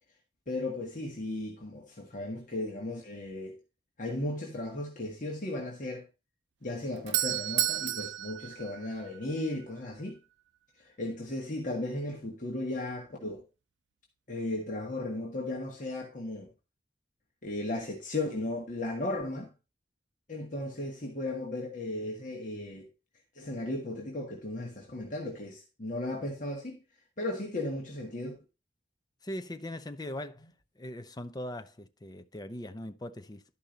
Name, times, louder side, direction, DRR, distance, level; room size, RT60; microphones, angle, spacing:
voice 1, 0.5-3.6 4.0-6.1 6.6-10.2 10.8-13.4 14.3-16.5 17.4-19.5 20.3-22.9 23.4-26.8 27.2-28.4, left 2 dB, 45° left, 1.7 m, -36 dB
Doorbell, 6.7-9.5, right 14 dB, 90° right, 0.4 m, -32 dB
voice 2, 29.2-30.5 30.8-33.4, left 1 dB, 25° left, 0.7 m, -40 dB
12.0 x 5.4 x 3.9 m
head